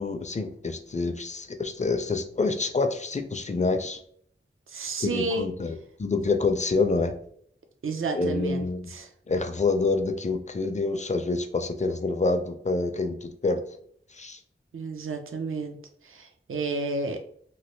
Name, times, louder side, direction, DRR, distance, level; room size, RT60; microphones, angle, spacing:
voice 1, 0.0-4.0 5.0-7.1 8.1-8.9 9.3-13.7 14.1-14.4, left 3 dB, 35° left, 7 dB, 0.4 m, -27 dB
voice 2, 4.7-5.5 7.8-9.1 14.7-15.8 16.0-17.2, right 3 dB, 80° right, 5 dB, 0.5 m, -31 dB
3.1 x 2.4 x 3.0 m, 0.62 s
wide cardioid pair, 60°, 21 cm